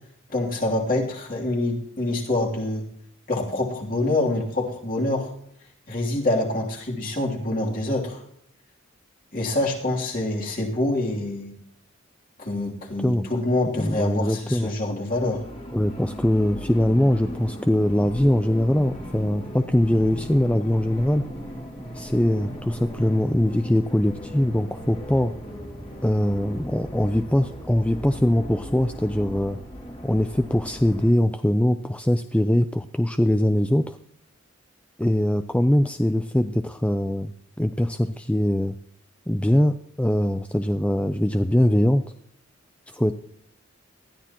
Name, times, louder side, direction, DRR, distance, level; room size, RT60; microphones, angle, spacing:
voice 1, 0.3-2.9 3.3-5.3 5.9-8.2 9.3-11.5 12.4-15.4, left 2 dB, 40° left, -2 dB, 3.0 m, -26 dB
voice 2, 13.8-14.7 15.7-21.2 21.9-25.3 26.0-29.6 30.0-34.0 35.0-37.3 37.6-38.7 39.3-42.0 42.9-43.1, left 1 dB, 5° left, 8 dB, 0.4 m, -22 dB
sound 1, 15.1-31.1, equal, 25° left, 2.3 m, -37 dB
19.5 x 13.5 x 3.0 m, 0.69 s
head